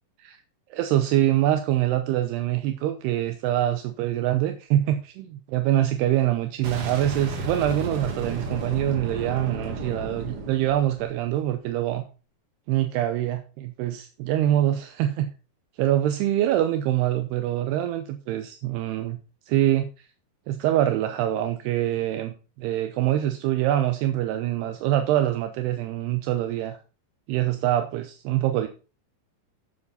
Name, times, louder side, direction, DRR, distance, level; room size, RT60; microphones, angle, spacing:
voice 1, 0.7-12.0 12.7-15.3 15.8-19.2 19.5-19.9 20.5-26.8 27.3-28.7, right 13 dB, 80° right, 8 dB, 2.7 m, -24 dB
Boom, 6.6-11.5, right 2 dB, 60° right, 1.5 m, -33 dB
12.5 x 7.4 x 4.1 m, 0.34 s
omnidirectional pair, 4.8 m